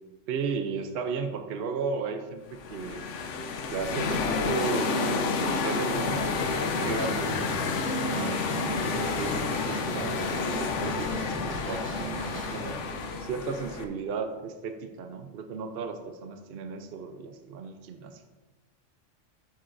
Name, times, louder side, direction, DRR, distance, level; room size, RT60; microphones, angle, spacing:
voice 1, 0.3-3.0 3.7-12.8 13.2-18.2, right 5 dB, 55° right, 6 dB, 0.8 m, -35 dB
sound 1, 2.5-13.8, left 4 dB, 80° left, 1.0 m, -30 dB
sound 2, 6.4-12.6, right 1 dB, 10° right, 1.0 m, -40 dB
9.1 x 8.5 x 2.6 m, 1.2 s
omnidirectional pair, 1.3 m